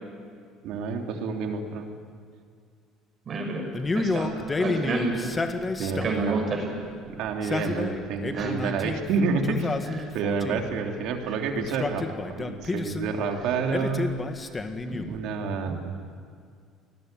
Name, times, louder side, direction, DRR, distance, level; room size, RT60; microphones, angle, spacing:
voice 1, 0.6-1.9 5.8-6.4 7.0-9.8 10.1-14.2 15.0-16.0, right 5 dB, 70° right, 3 dB, 3.3 m, -29 dB
voice 2, 3.3-3.7 3.9-4.3 4.6-5.3 6.0-6.8 7.5-7.7 8.3-8.5 14.9-15.0, right 3 dB, 40° right, 2 dB, 6.0 m, -29 dB
Male speech man speaking, 3.7-6.3 7.3-9.0 9.4-10.7 11.6-13.1 13.7-15.2, left 3 dB, 20° left, 1.7 m, -30 dB
27.5 x 20.0 x 9.2 m, 2.2 s
cardioid pair, 120°, 0 cm